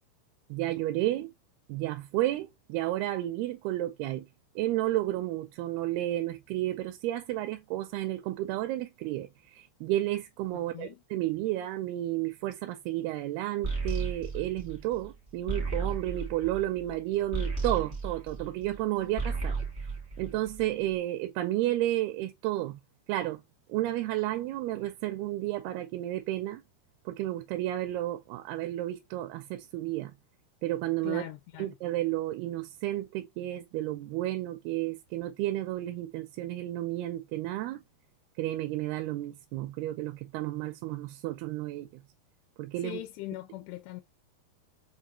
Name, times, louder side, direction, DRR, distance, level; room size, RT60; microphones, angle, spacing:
voice 1, 0.5-1.3 1.7-4.3 4.6-19.6 20.2-22.8 23.1-23.4 23.7-26.6 27.1-30.1 30.6-31.2 31.6-37.8 38.4-41.9 42.6-43.0, right 15 dB, 85° right, 2.5 m, -32 dB
sound 1, 13.6-18.8 19.1-20.8, right 4 dB, 55° right, 0.7 m, -34 dB
voice 2, 31.0-31.8 42.8-44.0, left 15 dB, 85° left, 2.6 m, -40 dB
6.1 x 2.4 x 2.6 m
omnidirectional pair, 4.6 m